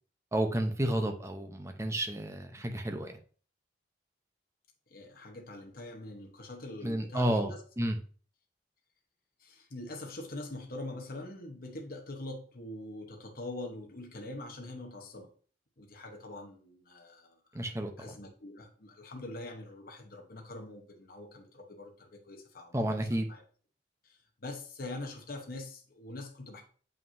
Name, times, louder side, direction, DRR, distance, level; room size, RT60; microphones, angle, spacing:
voice 1, 0.3-3.2 6.8-8.0 17.5-17.9 22.7-23.3, right 1 dB, 15° right, 5 dB, 0.7 m, -31 dB
voice 2, 4.9-7.6 9.4-15.3 15.8-17.3 18.0-22.9 23.3-23.4 24.0-26.6, left 2 dB, 55° left, 2 dB, 1.1 m, -43 dB
7.4 x 5.5 x 2.7 m, 0.41 s
head